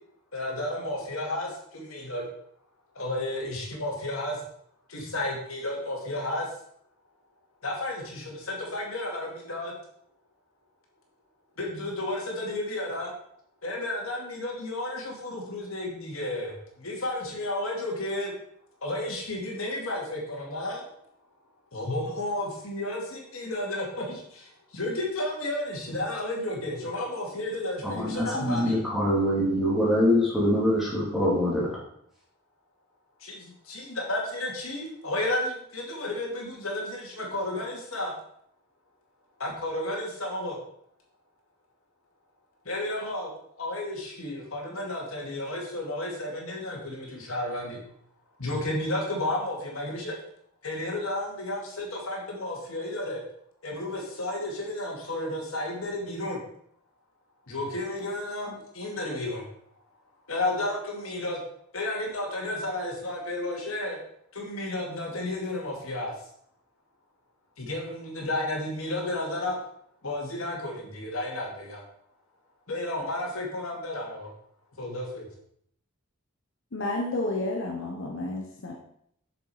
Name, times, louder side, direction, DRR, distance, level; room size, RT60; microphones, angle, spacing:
voice 1, 0.3-2.3 3.0-4.4 4.9-6.5 7.6-9.7 11.6-13.1 13.6-18.3 18.8-20.8 21.7-28.8 33.2-38.1 39.4-40.6 42.6-43.3 43.6-47.8 48.4-50.1 50.6-53.2 53.6-56.4 57.5-59.5 60.3-61.4 61.7-64.0 64.3-66.1 67.6-69.6 70.0-71.8 72.7-74.3 74.8-75.3, left 1 dB, 85° left, -1 dB, 2.3 m, -32 dB
voice 2, 27.8-31.8, equal, ahead, -7 dB, 3.1 m, -24 dB
voice 3, 76.7-78.7, left 2 dB, 60° left, 0 dB, 1.1 m, -31 dB
7.3 x 6.7 x 4.9 m, 0.68 s
head